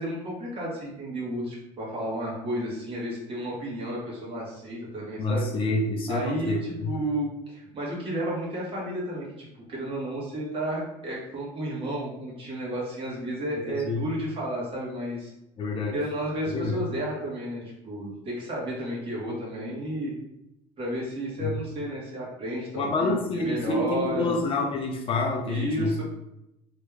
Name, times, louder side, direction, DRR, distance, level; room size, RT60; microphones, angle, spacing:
voice 1, 0.0-5.4 6.1-15.3 15.9-20.1 20.8-24.3 25.5-26.0, right 1 dB, 40° right, -5 dB, 1.4 m, -32 dB
voice 2, 5.2-6.9 13.6-14.0 15.6-16.0 16.5-16.8 21.4-21.6 22.7-26.0, left 2 dB, 35° left, 1 dB, 0.5 m, -28 dB
3.2 x 2.3 x 3.2 m, 0.88 s
cardioid pair, 120°, 15 cm